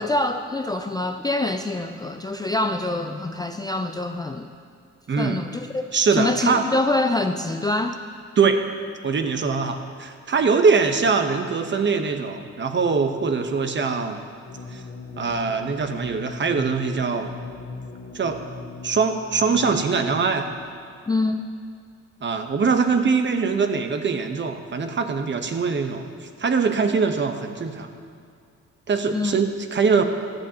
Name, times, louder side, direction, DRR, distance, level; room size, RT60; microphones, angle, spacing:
voice 1, 0.0-4.5 5.2-8.0 21.1-21.5 29.1-29.4, left 2 dB, 15° left, 6 dB, 0.4 m, -25 dB
voice 2, 5.1-5.4 5.9-6.7 8.4-8.6 9.0-14.2 14.7-14.8 15.2-17.3 18.1-18.4 18.8-20.5 22.2-27.9 28.9-30.0, right 5 dB, 40° right, 6 dB, 1.0 m, -22 dB
sound 1, 14.4-20.7, left 3 dB, 40° left, 1.3 m, -39 dB
15.5 x 12.0 x 2.9 m, 2.2 s
cardioid pair, 90°, 30 cm